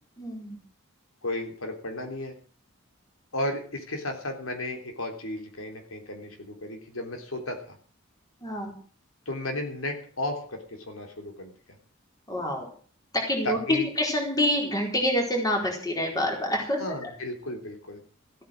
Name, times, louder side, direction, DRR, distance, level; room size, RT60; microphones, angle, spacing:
voice 1, 0.2-0.6 8.4-8.7 12.3-12.7 13.1-13.6 14.0-17.1, left 1 dB, 20° left, 1 dB, 4.3 m, -27 dB
voice 2, 1.2-2.3 3.3-7.8 9.3-11.5 13.4-13.9 16.8-18.0, left 1 dB, 85° left, 4 dB, 3.6 m, -34 dB
15.0 x 9.2 x 7.7 m, 0.44 s
head